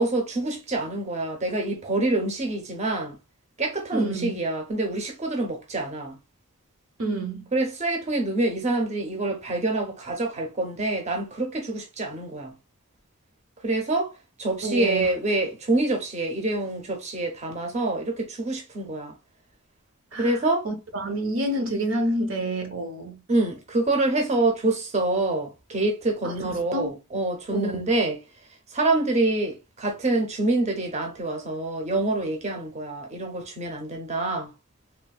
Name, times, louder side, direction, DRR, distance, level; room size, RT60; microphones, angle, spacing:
voice 1, 0.0-3.2 3.6-6.2 7.5-12.5 13.6-14.1 14.4-19.1 20.2-20.7 23.3-28.2 28.7-34.5, right 2 dB, 35° right, 0.7 m, -26 dB
voice 2, 3.9-4.4 7.0-7.5 14.6-15.1 20.1-20.4 20.6-23.2 26.2-27.0 27.5-27.8, right 1 dB, 65° right, 0.7 m, -28 dB
3.2 x 2.2 x 2.2 m
head